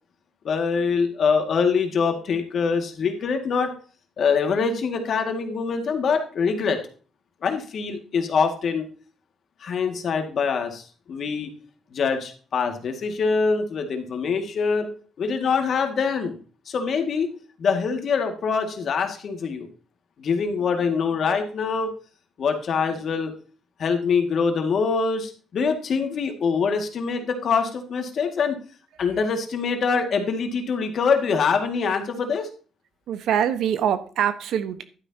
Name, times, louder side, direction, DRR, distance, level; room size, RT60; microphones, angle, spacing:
voice 1, 0.4-3.7 4.2-6.8 7.4-8.9 9.6-11.5 11.9-14.9 15.2-16.4 16.7-17.3 17.6-19.7 20.2-21.9 22.4-23.3 23.8-28.6 29.0-32.5, left 5 dB, 55° left, 5 dB, 2.1 m, -24 dB
voice 2, 33.1-34.8, right 9 dB, 75° right, 11 dB, 1.1 m, -24 dB
11.5 x 9.8 x 2.9 m, 0.39 s
cardioid pair, 115°, 0 cm